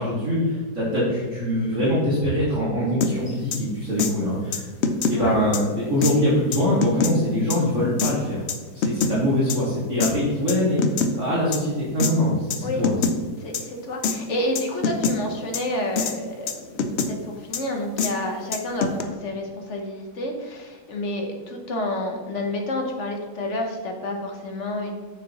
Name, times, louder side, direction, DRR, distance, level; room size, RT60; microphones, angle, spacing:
voice 1, 0.0-4.7 5.1-8.4 8.7-12.9, equal, 50° right, -9 dB, 2.1 m, -23 dB
sound 1, 3.0-3.1 3.5-3.6 4.0-4.1 4.5-5.2 5.5-5.6 6.0-6.1 6.5-7.1 7.5-7.6 8.0-8.1 8.5-9.1 9.5-9.6 10.0-10.1 10.5-11.1 11.5-11.6 12.0-12.1 12.5-12.6 12.8-13.2 13.5-13.6 14.0-14.2 14.6-15.2 15.5-15.6 16.0-16.1 16.5-17.1 17.5-17.6 18.0-18.1 18.5-19.0, left 5 dB, 70° left, 0.6 m, -24 dB
voice 2, 13.4-25.0, left 1 dB, 50° left, 2 dB, 1.2 m, -29 dB
7.4 x 6.5 x 2.9 m, 1.4 s
omnidirectional pair, 1.8 m